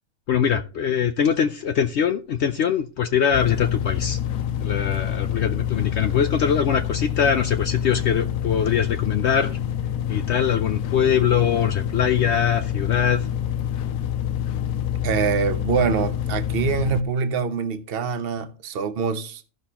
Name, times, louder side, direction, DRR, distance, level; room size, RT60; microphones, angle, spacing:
voice 1, 0.3-4.2 4.6-9.6 10.1-13.3, left 8 dB, 65° left, 0.8 m, -22 dB
sound 1, 3.3-17.0, left 10 dB, 85° left, 1.1 m, -27 dB
voice 2, 15.0-19.4, right 6 dB, 50° right, 0.9 m, -24 dB
15.0 x 6.3 x 2.8 m
omnidirectional pair, 1.4 m